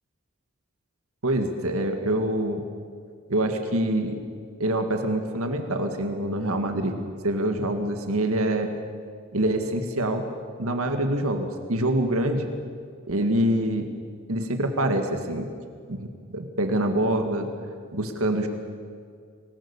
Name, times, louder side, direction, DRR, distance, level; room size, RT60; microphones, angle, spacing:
voice 1, 1.2-2.6 3.3-4.2 4.6-7.0 7.2-8.7 9.3-10.2 10.6-12.5 13.1-13.9 14.3-15.5 15.9-17.5 17.9-18.5, right 1 dB, 80° right, 5 dB, 2.0 m, -25 dB
24.5 x 19.0 x 7.2 m, 2.2 s
head